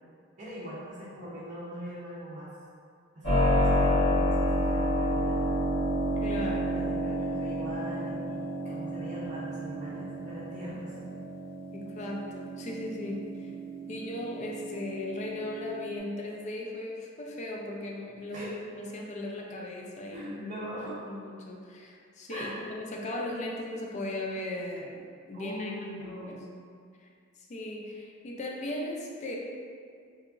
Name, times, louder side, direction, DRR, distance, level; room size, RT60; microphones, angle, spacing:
voice 1, 0.4-2.5 3.1-5.4 6.7-11.0 18.3-18.6 20.1-21.0 22.3-22.6 25.3-26.5, equal, 35° right, -8 dB, 0.5 m, -41 dB
Keyboard (musical), 3.2-16.0, equal, 90° left, 1.3 m, -30 dB
voice 2, 6.2-6.8 11.7-13.5 13.9-20.5 20.8-25.7 26.0-26.5 27.4-29.4, left 1 dB, 35° left, -1 dB, 0.3 m, -37 dB
2.8 x 2.4 x 2.4 m, 2.2 s
head